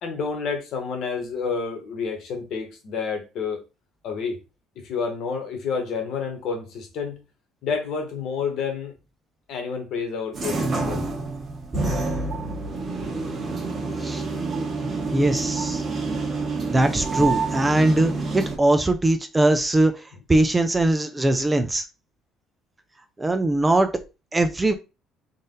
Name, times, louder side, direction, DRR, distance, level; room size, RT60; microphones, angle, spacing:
voice 1, 0.0-3.6 4.0-4.4 4.8-7.2 7.6-8.9 9.5-11.0, left 5 dB, 55° left, 1.3 m, -29 dB
sound 1, 10.3-18.6, right 3 dB, 30° right, 1.4 m, -28 dB
voice 2, 13.3-13.6 14.0-14.2 15.1-15.8 16.7-21.8 23.2-23.9 24.3-24.7, right 1 dB, 10° right, 0.4 m, -21 dB
3.9 x 2.5 x 3.8 m
cardioid pair, 145°, 0 cm